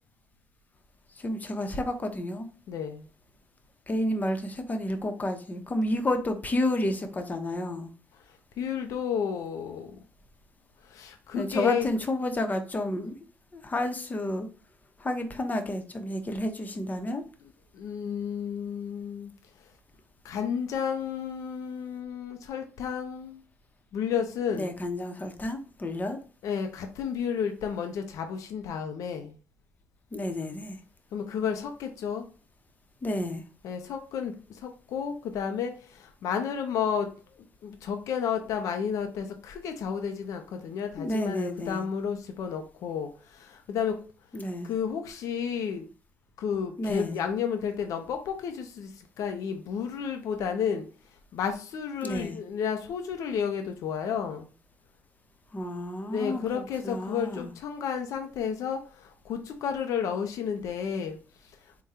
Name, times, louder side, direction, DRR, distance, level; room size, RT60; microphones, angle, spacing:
voice 1, 1.2-2.5 3.9-7.9 11.3-13.2 13.5-14.5 15.0-17.2 24.6-26.2 30.1-30.8 33.0-33.4 41.0-41.8 44.3-44.7 46.8-47.2 52.0-52.4 55.5-57.5, left 1 dB, 30° left, 0.8 m, -30 dB
voice 2, 2.7-3.1 8.3-10.0 10.8-11.9 17.7-19.3 20.2-23.4 23.9-24.7 26.4-29.4 31.1-32.2 33.6-37.1 37.6-44.0 44.6-45.9 46.4-50.9 51.3-54.5 56.1-61.2, left 7 dB, 75° left, 0.6 m, -32 dB
3.7 x 2.3 x 4.2 m
supercardioid pair, 65°, 6 cm